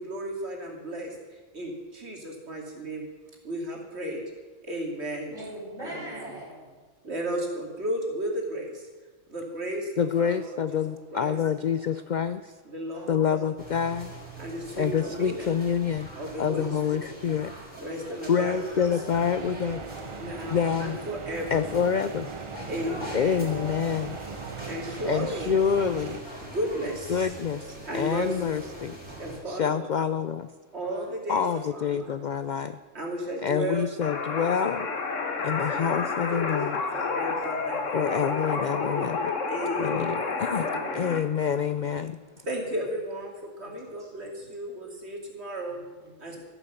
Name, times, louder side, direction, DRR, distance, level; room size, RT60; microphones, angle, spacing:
voice 1, 0.0-3.1 3.4-4.2 4.6-5.3 5.8-6.3 7.0-8.9 9.3-10.8 11.1-11.4 12.7-13.2 14.4-15.5 16.2-16.8 17.8-19.0 20.2-21.9 22.7-23.5 24.7-25.9 26.4-27.2 27.9-28.6 29.2-29.9 30.7-31.4 31.7-32.2 32.9-35.0 36.9-38.4 39.5-41.1 42.5-45.8 46.2-46.4, right 1 dB, 55° right, 0 dB, 3.0 m, -34 dB
voice 2, 5.3-6.8 10.1-10.2 10.6-11.0 11.8-11.9 12.8-13.3 14.5-14.7 18.9-19.4 19.9-20.3 23.4-24.1 26.5-26.7 27.1-27.2 29.2-29.9 30.8-31.1 31.4-31.7 32.0-32.1 33.5-33.6 34.2-34.7 35.7-35.8 36.3-37.9 40.4-40.8 42.6-42.8 43.6-44.1 44.4-44.5 45.7-46.4, equal, 85° right, -9 dB, 5.0 m, -45 dB
voice 3, 10.0-12.5 13.1-14.1 14.8-16.1 16.4-17.5 18.3-19.8 20.2-21.0 21.5-22.3 23.1-24.2 25.1-26.2 27.1-29.0 29.5-30.5 31.3-32.8 33.4-34.9 35.4-36.8 37.9-39.3 39.8-40.7 40.9-42.2, left 7 dB, 60° left, 12 dB, 0.5 m, -27 dB
sound 1, 13.6-29.4, right 1 dB, 5° right, 3.9 m, -43 dB
sound 2, 19.1-26.2, right 5 dB, 35° right, 0.5 m, -39 dB
sound 3, 34.0-41.2, left 4 dB, 75° left, 1.6 m, -30 dB
14.0 x 10.0 x 7.0 m, 1.3 s
omnidirectional pair, 1.3 m